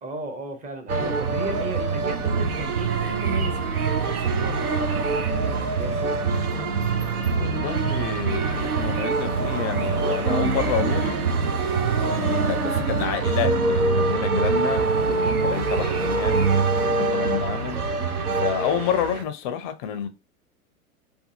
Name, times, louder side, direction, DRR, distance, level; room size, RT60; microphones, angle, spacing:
voice 1, 0.0-6.1, right 3 dB, 20° right, 0.7 m, -36 dB
sound 1, 0.9-19.2, right 4 dB, 85° right, 0.6 m, -24 dB
voice 2, 7.3-11.2 12.0-16.5 16.8-17.8 18.4-20.1, left 9 dB, 30° left, 0.4 m, -29 dB
2.5 x 2.4 x 2.7 m
figure-of-eight pair, 100°, 43 cm